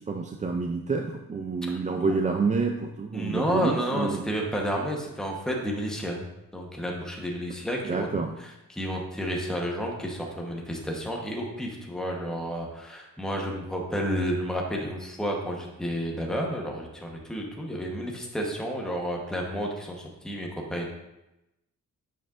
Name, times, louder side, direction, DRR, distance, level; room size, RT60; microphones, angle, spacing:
voice 1, 0.0-4.2 7.8-8.3, right 4 dB, 25° right, 3 dB, 0.3 m, -28 dB
voice 2, 1.7-2.2 3.1-6.2 6.5-8.1 8.4-20.9, equal, ahead, -1 dB, 1.0 m, -31 dB
8.6 x 7.1 x 2.5 m, 0.93 s
wide cardioid pair, 150°, 34 cm